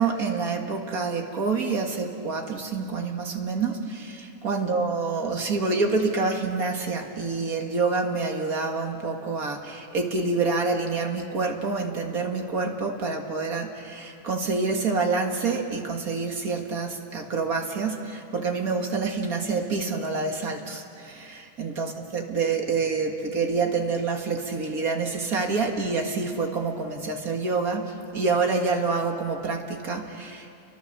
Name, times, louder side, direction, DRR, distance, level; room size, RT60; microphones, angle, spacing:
voice 1, 0.0-30.5, right 4 dB, 65° right, 3 dB, 2.3 m, -27 dB
30.0 x 23.5 x 6.8 m, 2.6 s
omnidirectional pair, 1.7 m